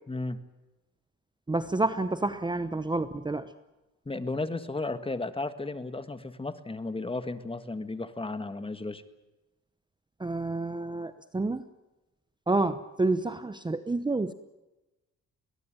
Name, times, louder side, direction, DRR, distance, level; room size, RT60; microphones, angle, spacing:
voice 1, 0.1-0.4 4.0-9.0, left 2 dB, 20° left, 11 dB, 1.6 m, -34 dB
voice 2, 1.5-3.5 10.2-11.6 12.5-14.3, right 2 dB, 15° right, 12 dB, 0.9 m, -29 dB
21.5 x 19.5 x 9.1 m, 1.0 s
cardioid pair, 90°, 30 cm